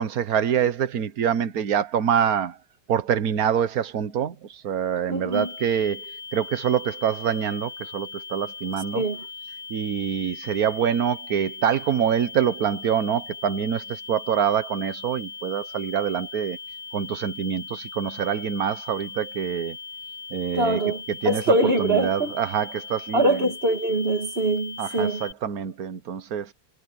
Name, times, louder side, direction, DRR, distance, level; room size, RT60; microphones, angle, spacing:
voice 1, 0.0-2.5 2.9-4.3 4.6-6.0 6.3-9.0 9.7-16.6 16.9-19.8 20.3-20.8 21.2-23.4 24.8-26.5, right 8 dB, 55° right, 1.5 m, -25 dB
voice 2, 5.1-5.5 8.9-9.2 20.5-22.3 23.1-25.3, right 2 dB, 35° right, 2.2 m, -23 dB
sound 1, 5.3-25.3, left 4 dB, 80° right, 3.2 m, -39 dB
omnidirectional pair, 2.0 m